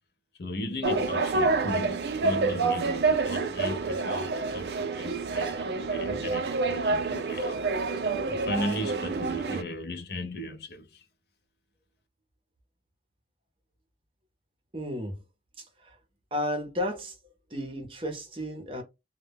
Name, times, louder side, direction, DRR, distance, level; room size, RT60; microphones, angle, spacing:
voice 1, 0.4-7.6 8.3-11.1, left 1 dB, 65° left, 0.5 m, -36 dB
sound 1, 0.8-9.6, right 3 dB, 70° right, 0.4 m, -28 dB
voice 2, 14.7-15.2 15.6-16.0 16.3-17.2 17.5-18.8, left 1 dB, 30° right, 0.6 m, -33 dB
2.1 x 2.1 x 3.3 m
head